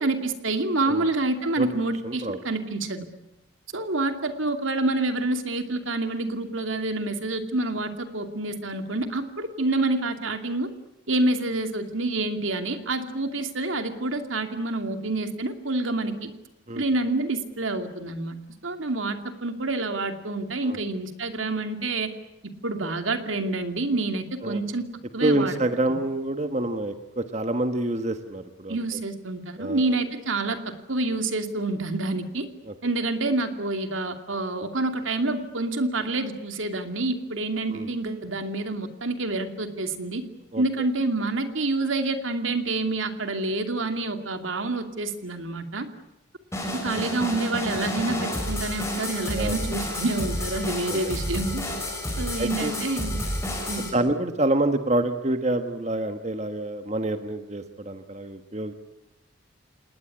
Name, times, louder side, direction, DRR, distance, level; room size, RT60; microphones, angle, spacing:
voice 1, 0.0-3.1 3.7-10.7 11.1-16.3 16.8-18.4 18.6-22.1 22.4-24.9 25.1-25.5 25.9-26.0 28.7-32.5 32.8-40.2 40.6-45.9 46.7-51.6 52.2-53.2 53.7-53.9, right 2 dB, 80° right, 7 dB, 2.6 m, -27 dB
voice 2, 2.0-2.4 16.7-16.8 20.6-20.8 24.4-24.6 25.2-28.8 29.6-29.9 32.7-32.8 37.7-37.9 40.5-40.6 49.3-49.7 50.9-51.2 52.4-52.7 53.8-58.7, right 1 dB, 35° right, 8 dB, 1.4 m, -27 dB
sound 1, 46.5-53.9, left 1 dB, 15° left, 6.3 m, -30 dB
27.5 x 19.5 x 9.9 m, 0.93 s
head